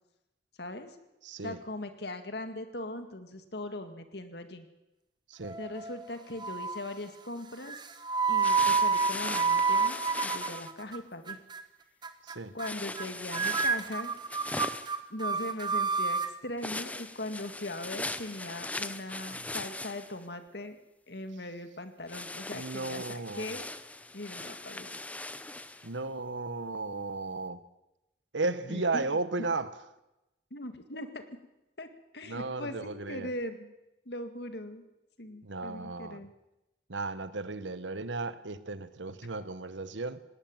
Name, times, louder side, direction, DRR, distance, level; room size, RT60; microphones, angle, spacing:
voice 1, 0.6-1.0 1.4-4.7 5.6-7.8 8.3-11.4 12.5-14.1 15.1-20.8 21.1-23.7 24.1-24.9 28.7-29.2 30.5-31.3 31.8-33.7 34.1-34.8 35.2-36.3, left 1 dB, 65° left, 2.0 m, -40 dB
voice 2, 1.2-1.6 5.3-5.6 12.2-12.6 19.3-19.4 22.5-23.5 25.8-27.6 28.3-29.7 32.2-33.3 35.4-36.3 36.9-40.2, right 3 dB, 85° right, 1.2 m, -35 dB
sound 1, 5.4-6.0 6.4-6.9 7.7-11.0 11.3-11.6 12.0-12.3 12.6-12.7 12.9-13.1 13.3-16.3, right 5 dB, 25° right, 1.2 m, -29 dB
sound 2, 8.4-10.7 12.6-15.0 16.6-20.2 22.1-25.9, left 2 dB, 10° left, 0.7 m, -39 dB
18.5 x 18.0 x 9.0 m
head